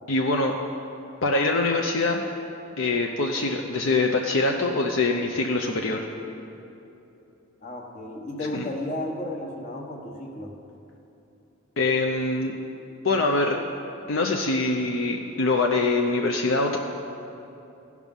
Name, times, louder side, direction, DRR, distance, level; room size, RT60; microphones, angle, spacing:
voice 1, 0.1-0.5 1.2-2.2 2.8-6.1 8.5-8.7 11.8-12.5 13.0-13.6 14.1-16.8, left 3 dB, 65° left, 2 dB, 0.6 m, -24 dB
voice 2, 7.6-10.5, left 1 dB, 35° left, 1 dB, 1.2 m, -33 dB
16.0 x 6.1 x 5.4 m, 2.8 s
head